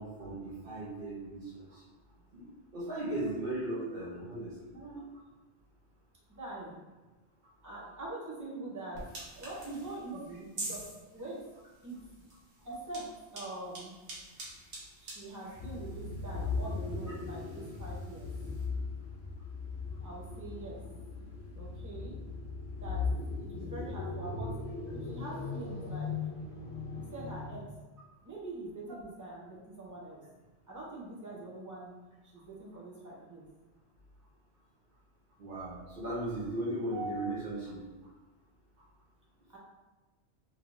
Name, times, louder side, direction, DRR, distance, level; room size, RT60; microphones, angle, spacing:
voice 1, 0.0-1.8 2.3-4.7 35.4-37.8, right 1 dB, 55° right, -8 dB, 0.9 m, -37 dB
voice 2, 6.3-6.7 7.6-9.1 9.3-10.8 11.1-11.4 11.8-12.3 12.6-13.0 13.3-13.9 15.0-18.3 20.0-21.1 21.5-22.2 22.8-23.0 23.4-26.2 27.1-27.7 28.2-30.2 30.7-31.9 32.2-33.5 39.5-39.6, right 2 dB, 20° right, -6 dB, 0.7 m, -44 dB
sound 1, 8.9-18.7, right 2 dB, 80° right, 1.2 m, -48 dB
sound 2, 15.6-27.7, left 4 dB, 70° left, 1.1 m, -38 dB
3.0 x 3.0 x 2.6 m, 1.2 s
omnidirectional pair, 1.1 m